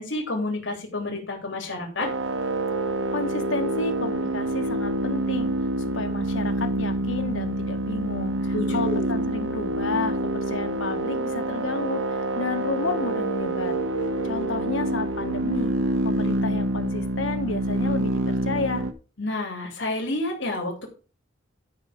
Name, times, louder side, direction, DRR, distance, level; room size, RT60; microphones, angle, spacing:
voice 1, 0.0-2.1 8.5-9.2 19.2-20.9, left 2 dB, 75° left, 0 dB, 3.1 m, -29 dB
sound 1, 2.0-18.9, right 1 dB, 90° right, 1.2 m, -27 dB
voice 2, 3.1-5.5 5.9-13.8 14.2-15.7 16.0-18.9, left 3 dB, 90° left, 7 dB, 1.5 m, -31 dB
12.0 x 5.7 x 5.1 m, 0.34 s
head